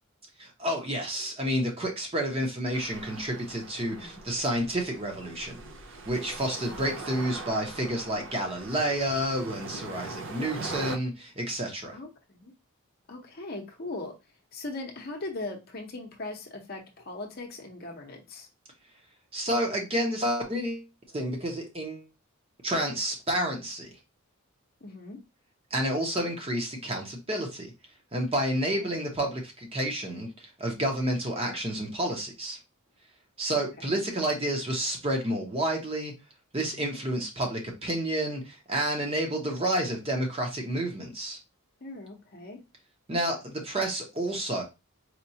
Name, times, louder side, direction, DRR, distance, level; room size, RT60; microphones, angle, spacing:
voice 1, 0.4-5.6 6.1-12.0 19.3-20.9 21.1-22.1 22.6-23.9 25.7-27.7 28.1-32.6 33.4-36.1 36.5-41.4 43.1-44.6, right 1 dB, 25° right, 0.8 m, -30 dB
sound 1, 2.7-11.0, right 3 dB, 60° right, 0.5 m, -41 dB
voice 2, 3.9-4.2 6.7-6.9 11.9-12.5 13.1-14.1 14.5-18.5 24.8-25.2 28.8-28.9 33.8-34.0 41.8-42.6, left 2 dB, 45° left, 0.7 m, -39 dB
4.3 x 2.3 x 2.7 m
head